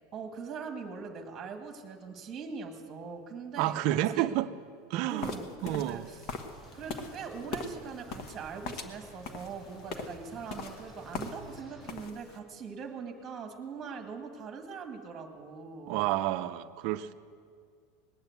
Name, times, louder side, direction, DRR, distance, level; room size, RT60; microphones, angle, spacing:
voice 1, 0.1-4.4 5.1-6.3 6.7-16.0, right 5 dB, 20° right, 4 dB, 1.8 m, -42 dB
voice 2, 3.6-4.5 4.9-5.3 5.6-6.1 15.9-17.1, right 14 dB, 50° right, 10 dB, 0.6 m, -30 dB
sound 1, 5.2-11.6 11.8-12.4, left 4 dB, 40° left, 1.1 m, -41 dB
sound 2, 6.5-11.9, right 1 dB, 5° left, 4.6 m, -53 dB
19.5 x 8.9 x 8.1 m, 2.2 s
supercardioid pair, 160°, 0 cm